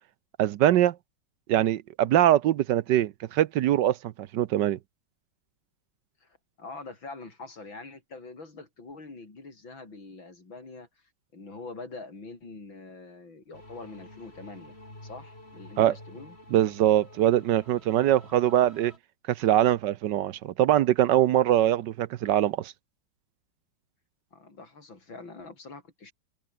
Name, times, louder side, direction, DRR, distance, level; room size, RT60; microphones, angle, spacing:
voice 1, 0.4-0.9 1.5-4.8 15.8-15.9 16.5-18.9 19.3-22.7, right 12 dB, 70° right, 1.3 m, -23 dB
voice 2, 6.2-10.9 11.3-14.8 15.0-16.4 24.3-26.1, left 3 dB, 80° left, 5.9 m, -44 dB
sound 1, 13.5-19.0, left 1 dB, 30° left, 7.3 m, -49 dB
omnidirectional pair, 2.1 m